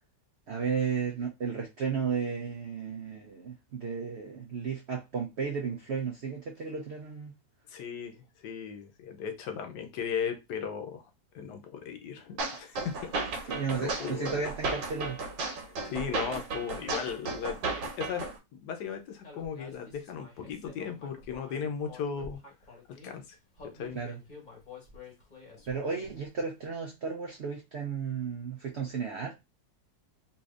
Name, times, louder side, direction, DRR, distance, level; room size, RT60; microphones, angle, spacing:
voice 1, 0.5-7.3 13.5-15.2 23.9-24.2 25.7-29.3, right 6 dB, 70° right, 0.6 m, -34 dB
voice 2, 7.7-11.0 11.3-14.4 15.6-22.4 22.9-23.4 23.6-24.0, left 7 dB, 70° left, 1.2 m, -37 dB
sound 1, 12.4-18.4, right 3 dB, 90° right, 1.6 m, -34 dB
Human voice, 19.2-23.1 23.5-26.3, left 4 dB, 30° left, 0.9 m, -50 dB
4.1 x 2.7 x 2.4 m
omnidirectional pair, 1.9 m